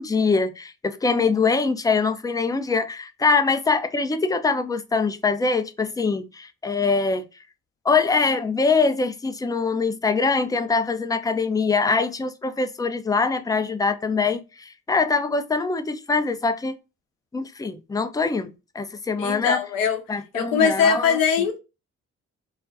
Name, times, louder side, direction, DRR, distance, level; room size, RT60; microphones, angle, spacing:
voice 1, 0.0-7.2 7.8-16.7 17.3-19.6 20.1-21.2, left 4 dB, 10° left, 0.4 m, -23 dB
voice 2, 19.2-20.0 20.3-21.6, left 6 dB, 75° left, 0.6 m, -21 dB
2.4 x 2.2 x 2.5 m
hypercardioid pair, 40°, 34 cm